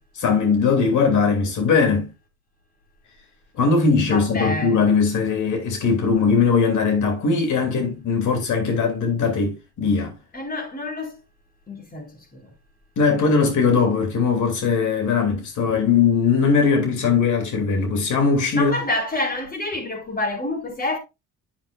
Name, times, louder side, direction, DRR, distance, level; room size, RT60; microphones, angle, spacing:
voice 1, 0.1-2.1 3.6-10.1 13.0-18.7, left 5 dB, 80° left, 2.8 m, -20 dB
voice 2, 4.0-4.8 10.3-11.1 11.7-12.5 18.5-21.0, left 2 dB, 30° left, 4.4 m, -28 dB
12.0 x 6.3 x 2.4 m
cardioid pair, 90°, 30 cm